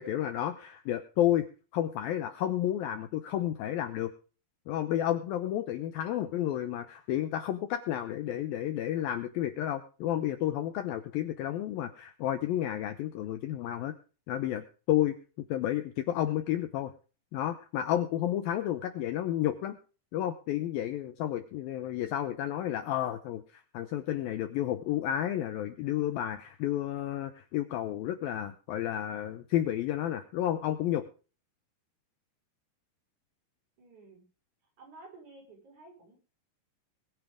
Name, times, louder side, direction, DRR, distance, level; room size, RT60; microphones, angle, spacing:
voice 1, 0.0-1.5 1.7-4.1 4.7-13.9 14.3-15.2 15.5-16.9 17.3-19.8 20.1-31.1, left 12 dB, 90° left, 9 dB, 2.0 m, -31 dB
voice 2, 33.8-34.3 34.8-36.2, right 3 dB, 40° right, 2 dB, 6.0 m, -52 dB
21.5 x 9.1 x 3.6 m, 0.36 s
omnidirectional pair, 5.4 m